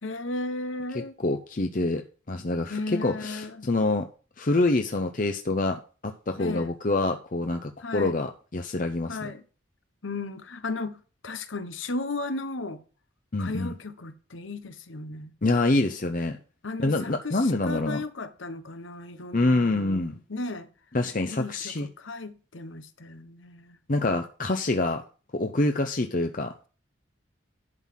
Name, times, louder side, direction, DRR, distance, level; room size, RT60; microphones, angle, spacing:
voice 1, 0.0-1.2 2.7-3.7 6.4-6.7 7.8-8.2 9.1-9.4 10.0-12.8 13.4-15.4 16.6-20.7 21.3-23.8, left 2 dB, 80° left, 1.1 m, -35 dB
voice 2, 1.2-2.0 2.3-4.1 4.4-9.2 13.3-13.7 15.4-16.4 16.8-18.0 19.3-20.2 20.9-21.9 23.9-25.0 25.3-26.5, left 2 dB, 45° left, 0.7 m, -26 dB
11.0 x 4.0 x 7.3 m
head